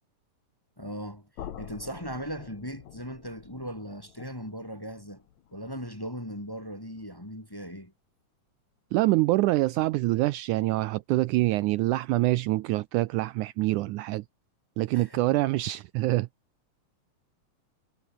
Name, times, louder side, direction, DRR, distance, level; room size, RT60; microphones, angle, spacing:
voice 1, 0.8-1.3 1.6-5.2 5.5-7.9 14.9-15.4, equal, 5° left, 2.3 m, -38 dB
sound 1, 1.4-7.3, left 10 dB, 65° left, 2.8 m, -48 dB
voice 2, 8.9-14.3 14.8-16.3, right 18 dB, 80° right, 1.9 m, -25 dB
omnidirectional pair, 3.8 m